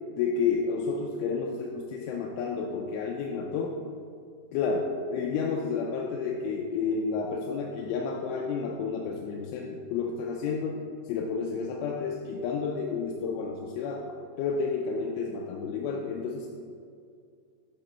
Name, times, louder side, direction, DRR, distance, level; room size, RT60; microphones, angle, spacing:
voice 1, 0.2-3.8 4.5-14.1 14.4-16.5, left 5 dB, 85° left, 0 dB, 3.0 m, -31 dB
8.7 x 3.7 x 5.5 m, 2.3 s
omnidirectional pair, 5.4 m